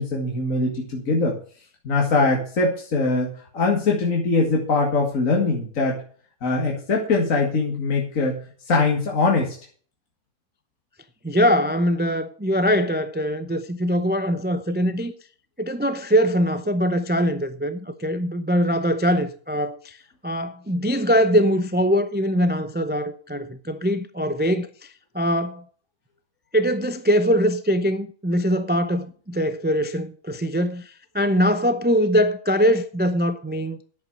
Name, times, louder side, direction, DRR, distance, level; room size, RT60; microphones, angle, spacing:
voice 1, 0.0-1.4 1.8-6.0 6.4-8.4 8.7-9.6, left 3 dB, 60° left, 2.3 m, -22 dB
voice 2, 11.2-15.1 15.6-20.0 20.2-25.6 26.5-33.8, equal, 15° right, 0.3 m, -22 dB
10.5 x 8.2 x 6.5 m
omnidirectional pair, 1.5 m